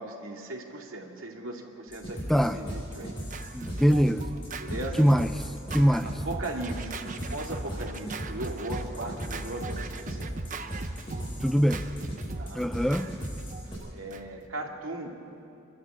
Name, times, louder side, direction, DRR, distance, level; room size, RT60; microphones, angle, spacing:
voice 1, 0.0-3.1 4.6-5.1 6.0-6.9 7.3-10.3 12.4-12.6 13.8-15.1, right 2 dB, 80° right, 0 dB, 2.4 m, -38 dB
sound 1, 1.9-13.7, equal, 25° left, 6.8 m, -37 dB
Scratching (performance technique), 2.4-14.5, right 3 dB, 40° right, 0.8 m, -40 dB
voice 2, 3.5-4.2 4.7-5.3 5.7-6.1 11.4-11.8 12.5-13.1, equal, ahead, 9 dB, 0.4 m, -23 dB
27.0 x 13.0 x 7.4 m, 2.7 s
head